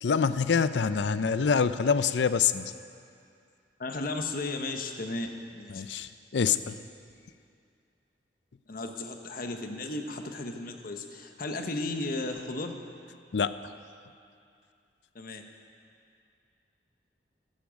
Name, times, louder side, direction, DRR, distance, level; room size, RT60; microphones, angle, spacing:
voice 1, 0.0-2.7 5.7-6.8 13.3-13.5, left 6 dB, 70° left, 13 dB, 0.5 m, -26 dB
voice 2, 3.8-6.0 8.7-12.8 15.1-15.4, left 2 dB, 50° left, 5 dB, 1.0 m, -35 dB
14.5 x 13.0 x 5.1 m, 2.4 s
head